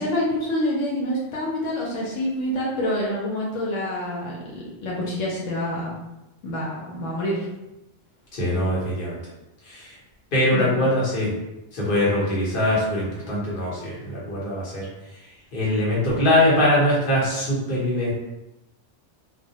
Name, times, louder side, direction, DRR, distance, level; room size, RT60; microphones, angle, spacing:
voice 1, 0.0-5.9 6.4-7.4 10.5-10.8, left 1 dB, 75° left, -4 dB, 0.9 m, -27 dB
voice 2, 8.3-9.2 9.7-9.9 10.3-11.3 11.7-14.9 15.5-18.1, left 1 dB, 50° left, -6 dB, 0.9 m, -22 dB
2.2 x 2.1 x 2.7 m, 0.96 s
omnidirectional pair, 1.3 m